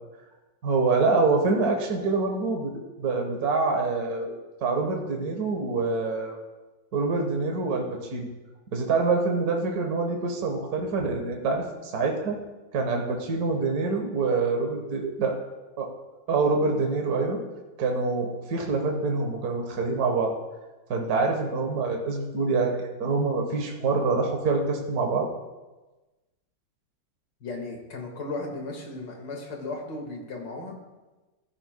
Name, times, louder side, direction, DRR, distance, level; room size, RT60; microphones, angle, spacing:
voice 1, 0.6-4.3 4.6-6.3 6.9-8.3 8.7-12.4 12.7-15.3 15.8-15.9 16.3-17.4 17.8-20.3 20.9-25.3, right 3 dB, 55° right, 2 dB, 1.7 m, -26 dB
voice 2, 27.4-30.8, left 2 dB, 75° left, 1 dB, 2.6 m, -36 dB
15.0 x 12.5 x 2.2 m, 1.1 s
omnidirectional pair, 2.0 m